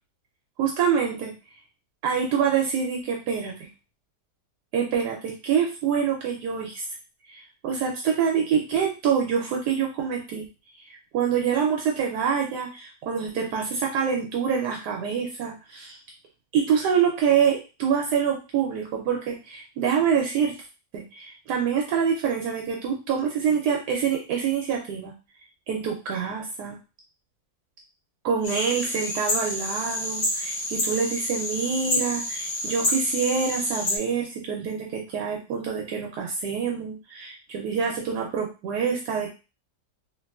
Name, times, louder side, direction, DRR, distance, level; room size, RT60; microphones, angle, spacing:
voice 1, 0.6-1.3 2.0-3.5 4.7-6.8 7.3-10.4 11.1-16.0 16.5-20.6 20.9-25.1 25.7-26.8 28.2-39.3, right 7 dB, 75° right, 0 dB, 1.1 m, -26 dB
sound 1, 28.4-34.0, left 1 dB, 65° left, 1.3 m, -28 dB
3.0 x 2.8 x 2.3 m, 0.31 s
omnidirectional pair, 1.8 m